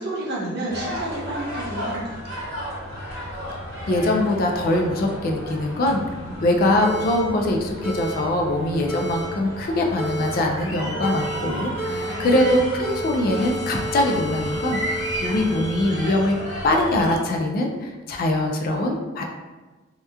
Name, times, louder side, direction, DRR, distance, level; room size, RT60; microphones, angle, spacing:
voice 1, 0.0-2.4 6.2-6.4 11.8-12.3, right 1 dB, 55° right, -5 dB, 0.7 m, -31 dB
sound 1, 0.7-17.2, equal, 85° right, 1.1 m, -33 dB
voice 2, 3.9-6.0 6.4-16.4 16.6-19.2, left 1 dB, 50° left, 1 dB, 0.3 m, -22 dB
sound 2, 6.8-7.2 7.8-8.1 8.9-9.2 10.0-10.3 11.0-11.4 11.8-12.6 12.8-16.6, right 1 dB, 10° left, 1.2 m, -31 dB
2.8 x 2.1 x 2.3 m, 1.2 s
head